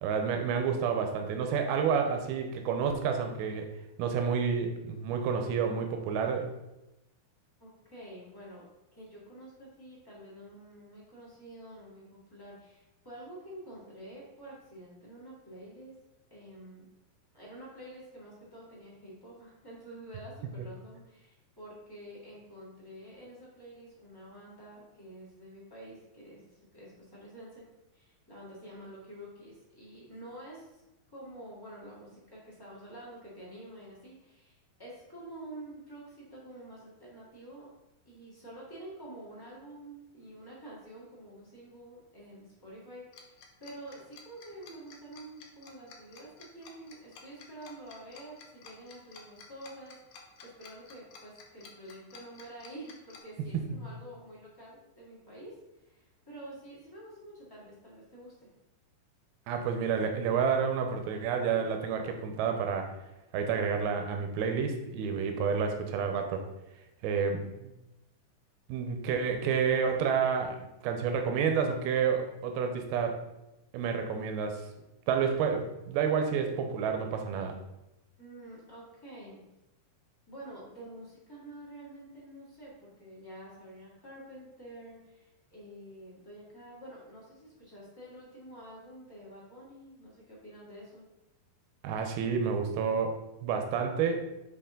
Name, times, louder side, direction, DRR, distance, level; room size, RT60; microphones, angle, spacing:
voice 1, 0.0-3.7 4.0-6.5 53.7-53.8 59.5-63.0 63.3-66.4 67.0-67.7 68.7-73.2 73.7-74.6 75.1-77.6 91.8-94.2, right 6 dB, 85° right, 5 dB, 2.7 m, -29 dB
voice 2, 7.6-8.6 8.9-15.9 16.3-16.8 17.3-27.6 27.9-30.8 31.1-37.7 38.0-55.6 55.8-58.5 78.2-79.4 80.3-91.1, right 1 dB, 25° left, -7 dB, 0.5 m, -48 dB
Tick-tock, 43.1-53.2, left 5 dB, 90° left, 1.5 m, -52 dB
9.3 x 4.0 x 3.8 m, 0.94 s
omnidirectional pair, 4.4 m